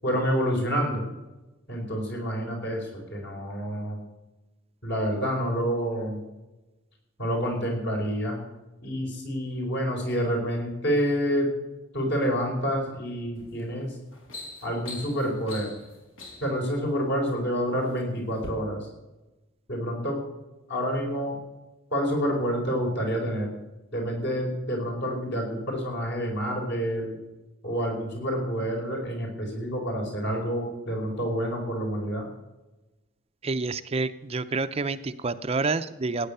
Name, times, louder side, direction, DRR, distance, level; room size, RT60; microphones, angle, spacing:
voice 1, 0.0-1.0 1.7-4.0 4.8-6.2 7.2-8.4 8.8-11.5 11.9-14.0 14.6-15.7 16.4-18.9 19.7-20.2 20.7-21.4 21.9-23.5 23.9-27.2 27.6-32.3, equal, 55° left, 1 dB, 5.2 m, -28 dB
sound 1, 13.4-13.6 14.0-16.6 17.4-18.0 18.3-18.5, left 2 dB, 75° left, 5.0 m, -42 dB
voice 2, 33.4-36.3, right 3 dB, 30° right, 11 dB, 0.5 m, -28 dB
17.0 x 9.3 x 6.8 m, 1.1 s
head